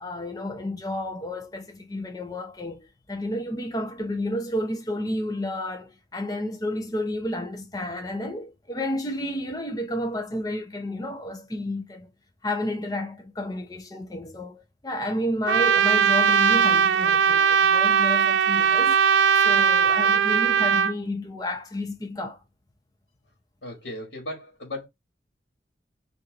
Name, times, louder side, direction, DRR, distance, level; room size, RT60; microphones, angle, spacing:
voice 1, 0.0-12.1 12.4-19.0 19.4-22.4, left 1 dB, 20° left, 0.8 m, -31 dB
Trumpet, 15.5-20.9, right 7 dB, 90° right, 0.3 m, -19 dB
voice 2, 23.6-24.9, left 1 dB, 85° left, 1.6 m, -36 dB
3.0 x 2.7 x 3.6 m
head